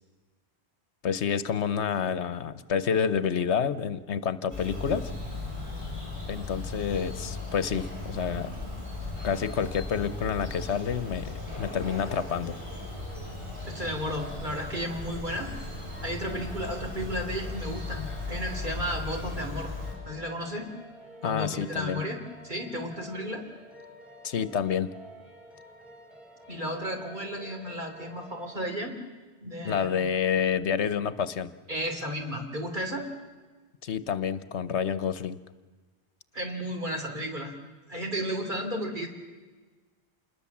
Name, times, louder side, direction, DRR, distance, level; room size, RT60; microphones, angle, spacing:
voice 1, 1.0-5.1 6.3-8.6 9.2-12.5 21.2-22.0 24.2-24.9 29.6-31.5 33.8-35.4, left 7 dB, 80° left, 14 dB, 1.2 m, -28 dB
Bird vocalization bird call bird song, 4.5-19.9, left 3 dB, 25° right, 7.3 m, -37 dB
sound 1, 9.8-28.7, equal, ahead, 7.3 m, -51 dB
voice 2, 13.6-15.5 16.0-19.7 20.0-20.7 21.2-23.4 26.5-29.0 29.4-30.0 31.7-33.1 36.3-37.5 37.9-39.1, equal, 45° right, 3 dB, 3.5 m, -33 dB
27.5 x 21.5 x 7.3 m, 1.4 s
omnidirectional pair, 1.2 m